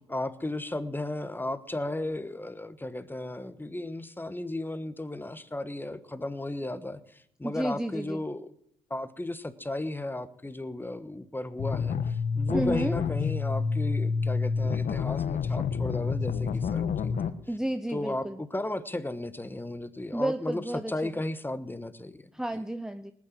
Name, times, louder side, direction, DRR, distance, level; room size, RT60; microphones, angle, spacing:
voice 1, 0.0-8.5 8.9-17.1 17.5-17.6 17.9-22.3, left 1 dB, 15° left, 13 dB, 1.3 m, -35 dB
voice 2, 7.4-8.2 12.5-13.0 17.5-18.4 20.1-20.9 22.3-23.1, right 1 dB, 5° right, 10 dB, 0.8 m, -31 dB
sound 1, 11.6-17.3, left 5 dB, 60° left, 1.2 m, -28 dB
18.5 x 8.7 x 7.6 m, 0.71 s
supercardioid pair, 55°, 15 cm